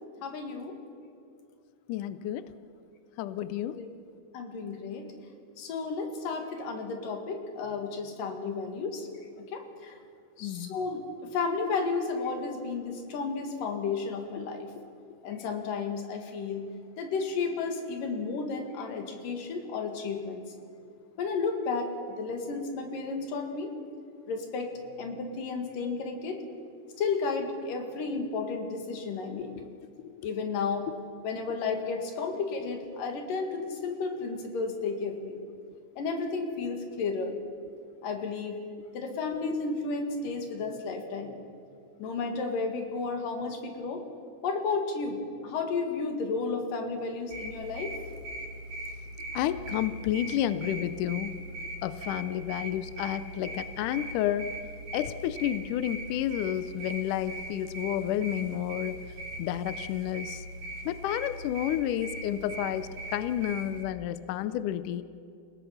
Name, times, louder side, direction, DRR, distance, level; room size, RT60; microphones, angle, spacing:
voice 1, 0.2-0.8 3.8-3.9 4.3-5.1 5.6-9.1 9.5-9.9 10.4-11.0 11.3-14.7 15.2-16.7 17.0-20.4 21.2-23.7 24.3-26.4 27.0-29.5 30.2-30.9 31.2-35.4 36.0-37.4 38.0-38.6 38.9-41.4 42.0-44.0 44.4-48.0, left 4 dB, 65° left, 4 dB, 3.5 m, -32 dB
voice 2, 1.9-2.5 3.2-3.8 10.4-10.8 29.4-29.6 30.0-30.1 49.4-51.4 51.8-54.5 54.9-59.0 59.4-60.4 60.9-65.0, left 11 dB, 80° left, 14 dB, 1.8 m, -31 dB
sound 1, 47.3-63.8, right 1 dB, 90° right, 7.2 m, -40 dB
28.5 x 18.0 x 5.7 m, 2.5 s
omnidirectional pair, 4.4 m